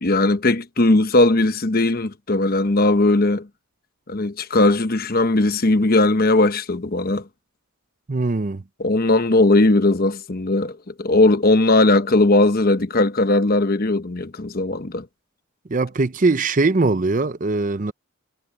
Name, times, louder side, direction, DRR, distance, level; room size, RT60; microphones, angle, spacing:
voice 1, 0.0-3.5 4.1-7.3 8.8-15.1, left 2 dB, 45° left, 1.0 m, -18 dB
voice 2, 8.1-8.6 15.7-17.9, right 3 dB, 35° right, 0.6 m, -21 dB
head